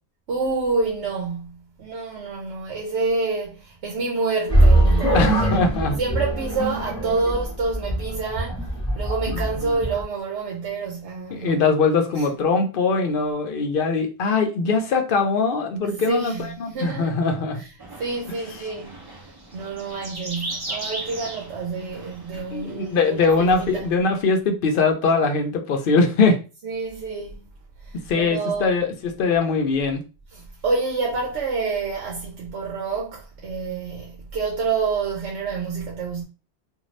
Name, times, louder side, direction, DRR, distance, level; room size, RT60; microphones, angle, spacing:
voice 1, 0.3-5.7 6.0-8.7 8.9-11.6 12.1-12.3 15.8-17.2 17.5-19.0 19.5-23.8 26.6-27.5 27.8-28.8 30.3-36.2, right 4 dB, 80° right, 0.9 m, -28 dB
sound 1, 4.5-10.0, right 1 dB, 5° left, 0.9 m, -21 dB
voice 2, 5.1-6.0 9.3-9.4 11.4-17.6 22.5-26.4 28.1-30.0, left 4 dB, 60° left, 0.7 m, -21 dB
sound 2, 17.8-23.9, right 2 dB, 30° right, 0.4 m, -37 dB
2.5 x 2.3 x 3.1 m
omnidirectional pair, 1.1 m